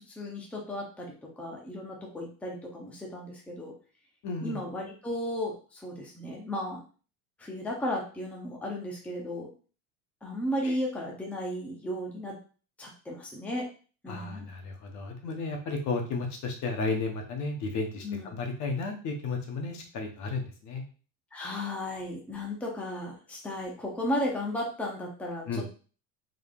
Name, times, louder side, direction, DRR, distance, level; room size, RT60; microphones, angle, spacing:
voice 1, 0.1-3.7 4.4-6.8 7.4-9.5 10.2-12.3 12.8-13.7 14.0-14.5 18.0-18.3 21.3-25.7, left 1 dB, 5° left, -2 dB, 0.7 m, -34 dB
voice 2, 4.2-4.6 10.6-10.8 14.1-20.8 25.5-25.7, left 3 dB, 45° left, 3 dB, 0.9 m, -33 dB
3.8 x 3.5 x 2.4 m, 0.38 s
cardioid pair, 145°, 39 cm